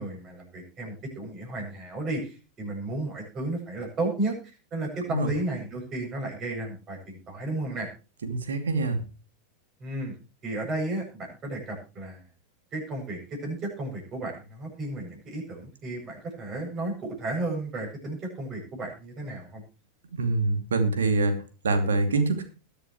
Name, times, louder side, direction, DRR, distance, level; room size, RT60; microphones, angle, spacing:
voice 1, 0.0-4.4 4.7-7.9 9.8-10.1 10.4-12.2 12.7-19.6, right 2 dB, 30° right, 1 dB, 7.6 m, -33 dB
voice 2, 8.2-9.0 20.1-22.4, right 3 dB, 65° right, 8 dB, 2.6 m, -25 dB
21.5 x 8.4 x 3.1 m, 0.33 s
figure-of-eight pair, 90°, 0 cm